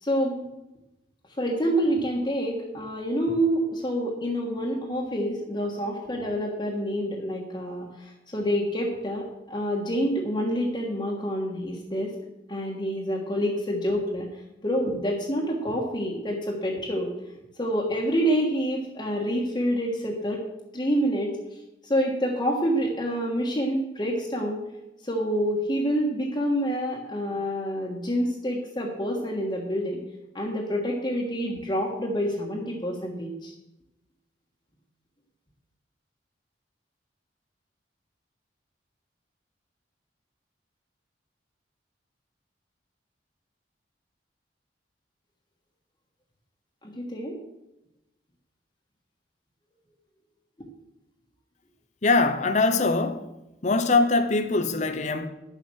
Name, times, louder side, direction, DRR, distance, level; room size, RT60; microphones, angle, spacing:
voice 1, 0.0-0.4 1.4-12.1 12.5-14.3 14.6-17.1 17.6-20.5 20.7-21.3 21.8-24.6 25.0-30.0 30.3-33.5 46.8-47.3, equal, 25° left, 1.5 m, -27 dB
voice 2, 52.0-53.3 53.6-55.3, left 3 dB, 40° left, 0.8 m, -22 dB
10.5 x 7.4 x 6.3 m
head